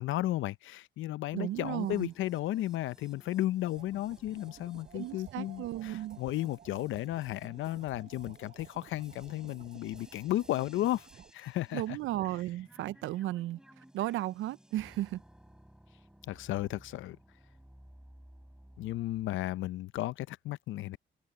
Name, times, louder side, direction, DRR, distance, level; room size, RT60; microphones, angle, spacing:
voice 1, 0.0-11.1 11.3-12.0 16.3-17.2 18.8-21.0, left 15 dB, 80° left, 0.6 m, -34 dB
voice 2, 1.3-2.1 4.9-6.2 11.7-13.6 13.9-15.2, right 14 dB, 80° right, 0.5 m, -34 dB
sound 1, 1.4-19.4, equal, 5° right, 3.2 m, -59 dB
sound 2, 3.8-11.3, right 8 dB, 45° right, 0.8 m, -54 dB
open air
cardioid pair, 90°, 20 cm